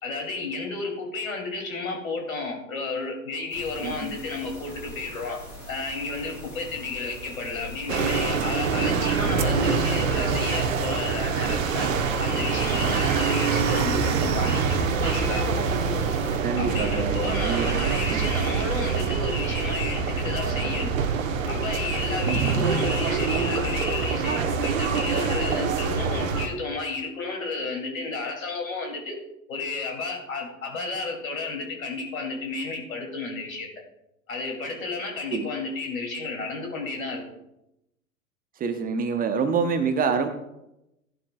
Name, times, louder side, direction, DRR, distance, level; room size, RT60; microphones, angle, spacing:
voice 1, 0.0-5.4 5.7-11.9 12.2-15.5 16.6-20.9 21.5-29.2 29.5-33.7 34.3-37.2, left 3 dB, 70° left, 1 dB, 2.7 m, -32 dB
sound 1, 3.5-16.4, equal, 90° left, 3.2 m, -42 dB
voice 2, 3.8-4.2 13.1-13.3 16.4-17.7 18.1-18.3 22.2-22.7 35.3-35.5 38.6-40.3, right 5 dB, 20° right, 8 dB, 0.8 m, -27 dB
sound 2, 7.9-26.5, right 5 dB, 65° right, 1.1 m, -25 dB
15.0 x 11.5 x 2.3 m, 0.88 s
figure-of-eight pair, 90°, 42 cm